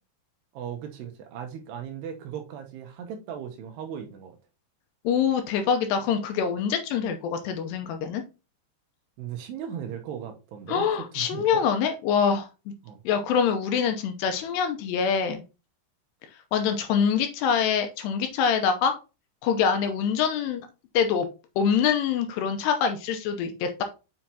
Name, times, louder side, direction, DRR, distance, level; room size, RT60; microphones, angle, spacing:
voice 1, 0.5-4.3 9.2-10.8 11.1-11.6 12.8-13.0, right 8 dB, 75° right, 2.7 m, -37 dB
voice 2, 5.0-8.2 10.7-12.5 13.1-15.4 16.5-18.9 19.4-20.7 20.9-21.3 21.6-23.8, left 7 dB, 80° left, 2.6 m, -25 dB
7.5 x 5.7 x 2.8 m
omnidirectional pair, 5.3 m